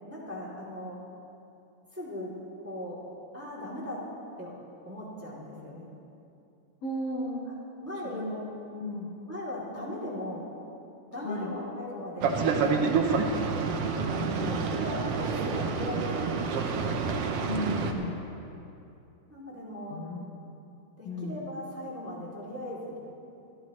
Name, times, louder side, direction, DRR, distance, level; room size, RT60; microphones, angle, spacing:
voice 1, 0.1-1.0 1.9-2.3 2.6-3.0 3.3-4.0 4.4-4.6 4.8-5.9 7.8-8.2 8.8-10.5 11.1-13.3 14.5-16.4 19.3-20.0 21.0-23.0, left 1 dB, 5° right, -6 dB, 2.4 m, -38 dB
voice 2, 6.8-7.5 8.1-8.5 8.8-9.1 11.2-11.5 14.0-14.9 17.4-18.2 19.9-20.5 21.0-21.4, left 1 dB, 55° left, -3 dB, 2.2 m, -35 dB
Boat Water vehicle, 12.2-17.9, right 5 dB, 70° right, 1.5 m, -28 dB
27.0 x 13.5 x 3.2 m, 2.7 s
omnidirectional pair, 3.8 m